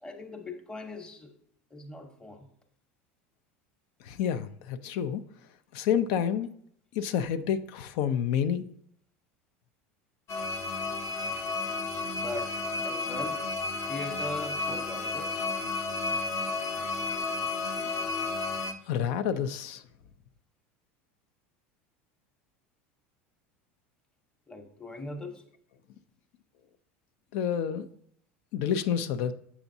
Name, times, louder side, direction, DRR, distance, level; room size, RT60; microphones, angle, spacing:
voice 1, 0.0-1.4 1.7-2.5 12.1-12.6 12.8-13.6 13.9-15.5 24.5-25.4, left 2 dB, 10° left, 2 dB, 0.9 m, -40 dB
voice 2, 4.0-5.2 5.7-6.5 6.9-8.6 18.9-19.8 27.3-27.9 28.5-29.3, left 8 dB, 65° left, 11 dB, 0.4 m, -29 dB
sound 1, 10.3-18.7, left 3 dB, 45° left, 0.8 m, -32 dB
7.1 x 5.7 x 2.7 m, 0.68 s
hypercardioid pair, 95°, 7 cm